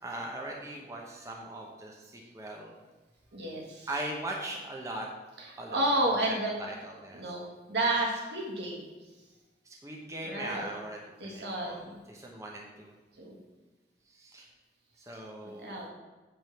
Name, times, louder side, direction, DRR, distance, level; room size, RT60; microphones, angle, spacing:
voice 1, 0.0-2.7 3.9-5.1 5.6-5.9 6.2-7.2 9.6-12.9 14.1-14.5 15.0-15.8, right 1 dB, 20° right, -1 dB, 0.9 m, -40 dB
voice 2, 3.3-3.9 5.4-6.5 7.1-8.8 10.2-10.7 11.2-11.9 13.2-13.4 15.6-15.9, right 1 dB, 80° right, -2 dB, 1.9 m, -31 dB
8.7 x 3.7 x 6.8 m, 1.2 s
head